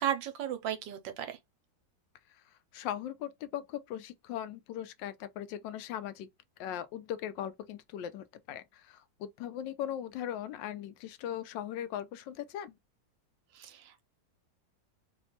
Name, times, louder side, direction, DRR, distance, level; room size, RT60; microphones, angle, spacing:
voice 1, 0.0-1.4 13.5-14.0, right 10 dB, 85° right, 1.4 m, -35 dB
voice 2, 2.7-6.3 6.6-12.8, left 10 dB, 80° left, 1.2 m, -39 dB
3.4 x 2.2 x 3.9 m
omnidirectional pair, 2.0 m